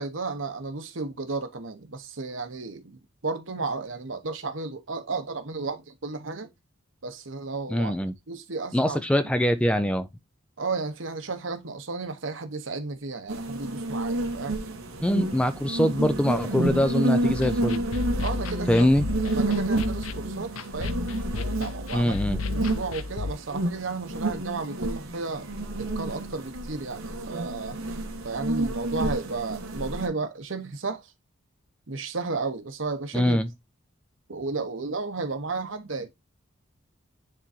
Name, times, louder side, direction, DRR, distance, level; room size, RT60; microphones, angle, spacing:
voice 1, 0.0-6.5 7.0-7.9 8.3-9.3 10.6-14.7 18.2-18.9 19.3-21.0 21.3-22.2 22.5-25.5 25.8-27.8 28.2-31.1 31.9-33.4 34.3-36.1, right 3 dB, 65° right, 1.0 m, -33 dB
voice 2, 7.7-8.1 8.7-10.1 15.0-17.8 18.7-19.1 21.9-22.4 33.1-33.5, equal, 5° left, 0.4 m, -23 dB
sound 1, 13.3-30.1, right 1 dB, 90° right, 1.3 m, -30 dB
sound 2, 17.3-23.3, left 4 dB, 85° left, 0.5 m, -33 dB
9.7 x 3.8 x 2.7 m
head